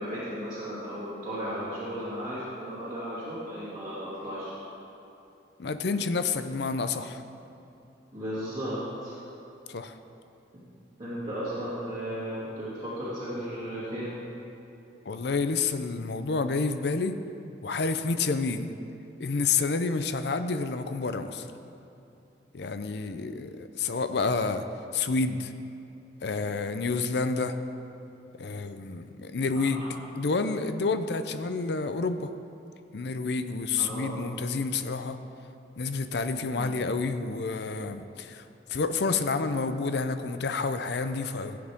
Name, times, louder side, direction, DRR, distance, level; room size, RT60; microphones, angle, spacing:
voice 1, 0.0-4.5 8.1-9.2 11.0-14.1 29.5-29.9 33.8-34.1 36.5-36.8, equal, 25° right, -12 dB, 2.7 m, -35 dB
voice 2, 5.6-7.2 9.7-9.9 15.1-17.1 17.6-18.8 19.2-21.5 22.5-24.6 24.9-25.5 26.2-27.5 28.4-29.9 30.2-32.3 32.9-35.2 35.8-38.4 38.7-41.6, left 4 dB, 65° left, 10 dB, 0.5 m, -29 dB
16.5 x 7.7 x 3.6 m, 2.8 s
head